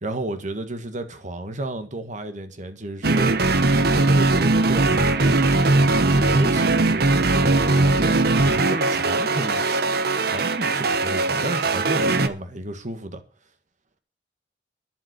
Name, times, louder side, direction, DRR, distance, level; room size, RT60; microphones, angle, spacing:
voice 1, 0.0-3.4 3.9-5.4 6.0-8.2 8.7-9.7 10.2-13.2, right 1 dB, 45° right, 1.8 m, -32 dB
sound 1, 3.0-12.3, right 2 dB, 60° right, 1.0 m, -20 dB
11.5 x 7.2 x 8.2 m
head